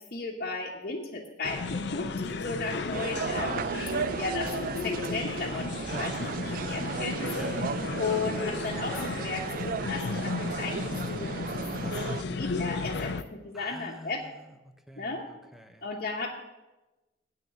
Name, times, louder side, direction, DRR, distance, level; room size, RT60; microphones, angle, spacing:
voice 1, 0.0-3.9 4.1-6.1 6.5-7.3 8.0-11.6 11.9-14.2 15.0-15.3 15.8-16.3, left 3 dB, 50° left, -4 dB, 1.2 m, -35 dB
sound 1, 1.4-13.2, left 4 dB, 65° left, 0.6 m, -34 dB
sound 2, 2.9-12.2, right 6 dB, 50° right, 0.3 m, -35 dB
sound 3, 3.1-4.7 5.2-13.5, right 2 dB, 70° right, 2.5 m, -49 dB
voice 2, 5.8-6.2 7.3-7.9 13.5-15.9, equal, ahead, 6 dB, 0.7 m, -47 dB
8.7 x 6.4 x 7.9 m, 1.1 s
head